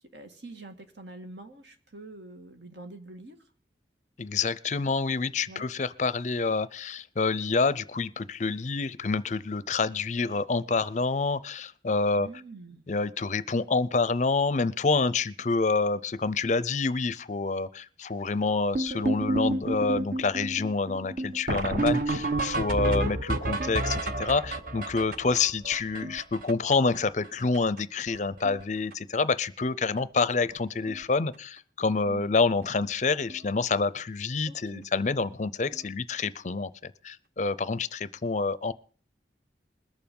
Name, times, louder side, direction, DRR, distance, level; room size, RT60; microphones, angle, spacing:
voice 1, 0.1-3.4 5.5-5.7 12.2-12.8 32.0-32.3 34.5-34.9, right 2 dB, 75° right, 6 dB, 1.8 m, -45 dB
voice 2, 4.2-12.3 12.9-38.7, left 4 dB, 40° left, 17 dB, 0.5 m, -27 dB
sound 1, 18.7-27.0 27.2-27.3 27.5-27.8 28.1-28.6 28.9-29.2 30.0-30.1 30.5-30.6 30.9-31.0 33.3-33.4 35.7-35.8, right 2 dB, 50° right, 1.0 m, -30 dB
21.0 x 7.0 x 5.3 m, 0.43 s
head